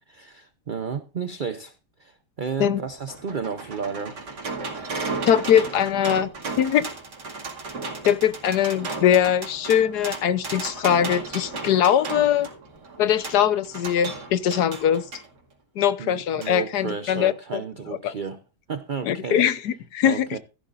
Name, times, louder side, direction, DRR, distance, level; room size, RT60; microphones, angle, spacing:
voice 1, 0.1-1.7 2.0-4.3 16.0-18.4 18.7-19.4 20.0-20.4, right 6 dB, 45° right, 0.7 m, -32 dB
sound 1, 2.7-15.3 16.4-16.5 16.9-17.0, right 3 dB, 80° right, 2.8 m, -34 dB
voice 2, 5.3-6.3 6.6-6.8 8.0-12.5 13.0-15.0 15.8-17.6 18.0-18.1 19.0-20.4, left 9 dB, 75° left, 1.4 m, -21 dB
15.5 x 11.0 x 2.5 m
omnidirectional pair, 1.8 m